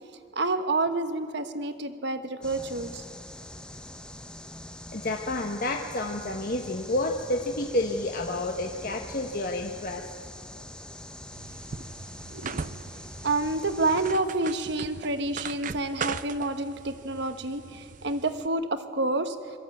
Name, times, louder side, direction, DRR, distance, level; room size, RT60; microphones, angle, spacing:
voice 1, 0.3-3.0 12.3-12.6 13.2-19.6, right 2 dB, 55° right, 9 dB, 1.2 m, -29 dB
sound 1, 2.4-14.1, left 1 dB, 5° left, 0.8 m, -44 dB
voice 2, 4.9-10.1, left 2 dB, 45° left, 2 dB, 1.0 m, -30 dB
sound 2, 11.3-18.5, right 5 dB, 40° right, 0.5 m, -39 dB
23.0 x 14.0 x 8.5 m, 2.5 s
head